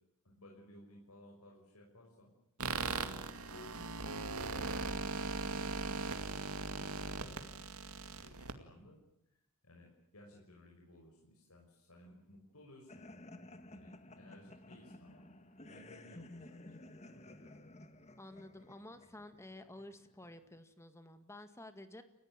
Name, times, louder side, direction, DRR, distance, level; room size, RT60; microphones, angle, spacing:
voice 1, 0.2-2.3 3.3-6.3 6.7-7.6 8.1-9.0 9.6-13.1 13.7-15.3 15.7-17.7, left 1 dB, 90° left, -1 dB, 6.2 m, -59 dB
sound 1, 2.6-8.5, right 3 dB, 80° right, 2.3 m, -39 dB
sound 2, 12.9-20.5, left 1 dB, 30° left, 1.7 m, -54 dB
voice 2, 18.2-22.0, left 1 dB, 10° left, 10 dB, 1.9 m, -52 dB
30.0 x 16.0 x 8.9 m, 0.81 s
head